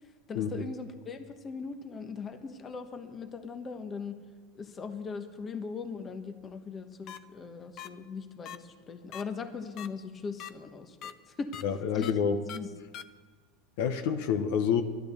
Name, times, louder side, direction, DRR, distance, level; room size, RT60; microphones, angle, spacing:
voice 1, 0.3-4.2 4.5-11.5 11.9-12.7, left 5 dB, 25° left, 8 dB, 1.1 m, -40 dB
sound 1, 7.1-7.2 7.8-7.9 8.5-8.6 9.1-9.2 9.8-9.9 10.4-10.5 11.0-11.1 11.5-11.6 12.0-12.1 12.5-12.6 12.9-13.0, left 11 dB, 45° left, 0.7 m, -41 dB
voice 2, 11.6-12.4 13.8-14.8, left 7 dB, 70° left, 8 dB, 1.0 m, -27 dB
12.0 x 11.0 x 6.9 m, 1.4 s
supercardioid pair, 125°, 0 cm